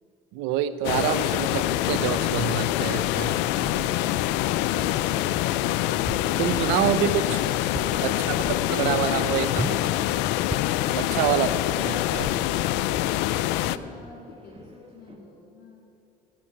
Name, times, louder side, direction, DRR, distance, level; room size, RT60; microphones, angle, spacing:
voice 1, 0.3-3.3 6.4-7.4 8.0-9.8 10.9-11.5 11.8-12.4, right 10 dB, 85° right, 13 dB, 0.7 m, -27 dB
sound 1, 0.8-13.8, left 14 dB, 80° left, 0.4 m, -25 dB
sound 2, 1.3-15.2, right 2 dB, 30° right, 1.8 m, -50 dB
sound 3, 3.0-4.0 4.7-5.1 5.4-5.5 5.9-7.1 7.4-8.1 8.4-8.7 9.5-9.9 10.5-10.8, right 2 dB, 10° right, 0.6 m, -36 dB
voice 2, 13.6-15.9, left 4 dB, 65° left, -3 dB, 2.6 m, -49 dB
10.5 x 8.7 x 9.7 m, 2.8 s
supercardioid pair, 70°, 18 cm